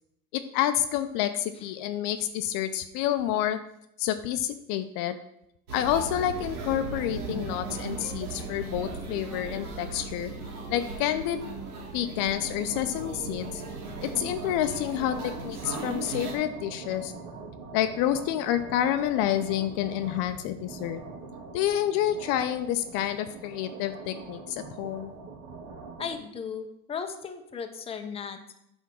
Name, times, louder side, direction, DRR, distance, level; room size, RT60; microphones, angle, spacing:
voice 1, 0.3-3.6 4.0-5.1 5.7-10.3 10.7-11.4 11.9-13.6 14.0-17.1 17.7-21.0 21.5-25.1, left 11 dB, 50° left, 10 dB, 0.6 m, -28 dB
sound 1, 5.7-16.4, right 3 dB, 80° right, 1.9 m, -37 dB
sound 2, 12.0-26.2, right 4 dB, 60° right, 2.1 m, -43 dB
voice 2, 26.0-28.5, left 6 dB, 15° left, 5 dB, 0.7 m, -36 dB
8.1 x 3.6 x 6.1 m, 0.79 s
supercardioid pair, 110°, 43 cm